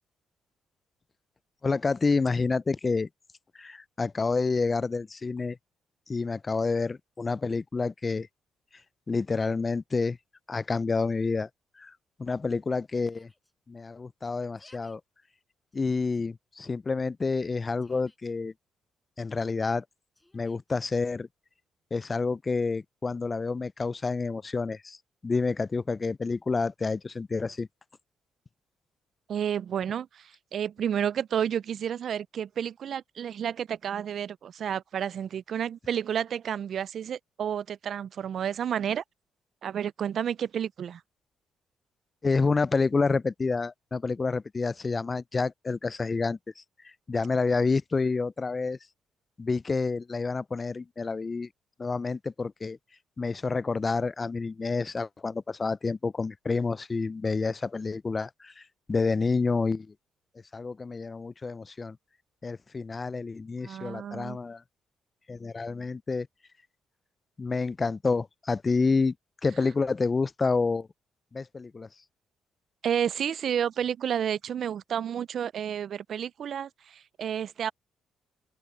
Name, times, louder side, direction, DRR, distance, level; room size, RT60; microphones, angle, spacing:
voice 1, 1.6-3.1 3.6-5.6 6.1-8.3 9.1-10.2 10.5-11.5 11.8-11.9 12.2-13.3 13.7-15.0 15.7-18.5 19.2-19.8 20.3-21.3 21.9-25.0 25.2-27.7 42.2-48.8 49.4-51.5 51.8-52.8 53.2-58.6 58.9-59.9 60.5-62.0 62.4-64.6 65.3-66.3 67.4-69.1 69.4-70.9 71.3-71.9, left 4 dB, 30° left, 0.3 m, -28 dB
Yell, 13.0-13.5 14.4-15.0 15.7-16.2 17.4-18.3 20.1-20.8, left 1 dB, 10° left, 6.6 m, -62 dB
voice 2, 29.3-39.0 39.6-41.0 63.6-64.4 72.8-77.7, right 9 dB, 60° right, 0.3 m, -31 dB
open air
cardioid pair, 90°, 0 cm